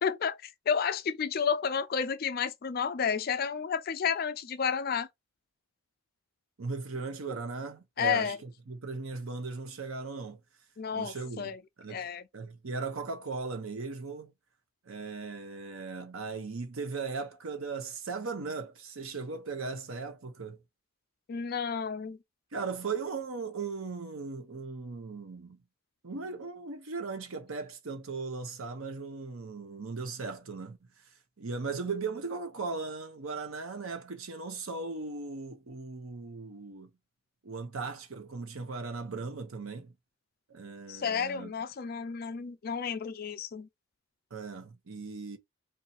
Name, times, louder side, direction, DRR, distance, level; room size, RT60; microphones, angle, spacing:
voice 1, 0.0-5.1 8.0-8.4 10.8-11.6 11.9-12.2 21.3-22.2 40.9-43.7, left 6 dB, 45° left, 0.3 m, -31 dB
voice 2, 6.6-10.4 10.9-11.5 11.8-12.1 12.3-14.3 14.9-20.6 22.5-25.6 26.0-30.8 31.4-36.9 37.4-39.9 40.5-41.5 44.3-45.4, right 4 dB, 80° right, 0.8 m, -38 dB
2.7 x 2.3 x 4.1 m
head